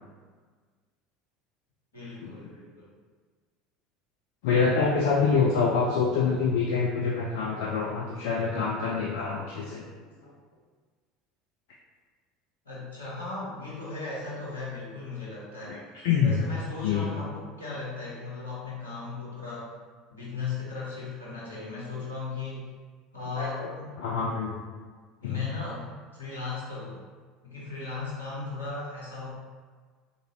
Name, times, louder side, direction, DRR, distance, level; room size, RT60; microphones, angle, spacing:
voice 1, 1.9-2.9 10.0-10.3 12.6-15.8 16.2-19.7 20.1-22.7 23.1-23.9 25.2-25.9 26.1-27.0 27.4-29.3, left 4 dB, 80° left, -8 dB, 1.0 m, -37 dB
voice 2, 4.4-9.9 15.7-16.4 16.8-17.1 23.4-23.7 24.0-24.6 25.2-25.4, left 5 dB, 60° left, -2 dB, 0.4 m, -26 dB
3.8 x 2.6 x 2.8 m, 1.5 s
figure-of-eight pair, 70°, 0 cm